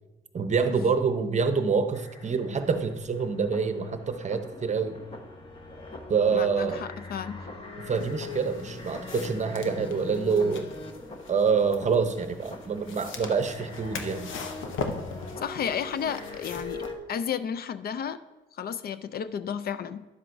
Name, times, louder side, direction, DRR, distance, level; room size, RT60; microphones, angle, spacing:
voice 1, 0.3-5.0 6.1-6.8 7.9-10.6 11.3-14.3, right 5 dB, 35° right, 8 dB, 0.7 m, -26 dB
sound 1, 1.9-17.0, left 3 dB, 25° left, 1.0 m, -42 dB
voice 2, 6.3-7.4 15.4-16.8 17.1-18.2 18.5-20.1, left 8 dB, 50° left, 13 dB, 0.4 m, -32 dB
sound 2, 7.9-16.9, left 4 dB, 80° left, 0.8 m, -41 dB
11.0 x 7.6 x 2.6 m, 1.1 s
cardioid pair, 90°, 20 cm